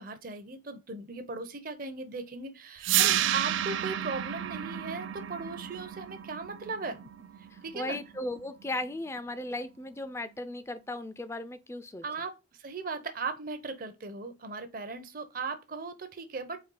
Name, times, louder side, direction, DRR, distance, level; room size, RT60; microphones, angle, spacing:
voice 1, 0.0-7.0 7.4-8.0 12.0-12.3 12.6-16.7, right 4 dB, 45° right, 0.6 m, -38 dB
sound 1, 2.8-8.9, right 12 dB, 85° right, 0.4 m, -31 dB
voice 2, 7.5-12.0, left 2 dB, 15° left, 0.4 m, -36 dB
4.3 x 3.1 x 3.8 m
head